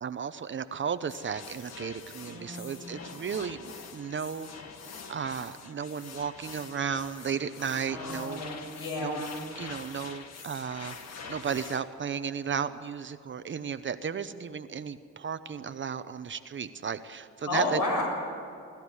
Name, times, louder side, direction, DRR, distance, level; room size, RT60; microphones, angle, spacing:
voice 1, 0.0-4.5 5.1-8.4 9.0-9.2 9.6-11.0 11.3-17.8, right 7 dB, 40° right, 11 dB, 0.8 m, -34 dB
sound 1, 1.1-11.8, left 5 dB, 60° left, 1.7 m, -45 dB
voice 2, 2.2-2.8 7.9-9.4 17.4-18.1, left 2 dB, 80° left, 0 dB, 6.8 m, -32 dB
21.5 x 13.5 x 9.9 m, 2.4 s
cardioid pair, 90°, 30 cm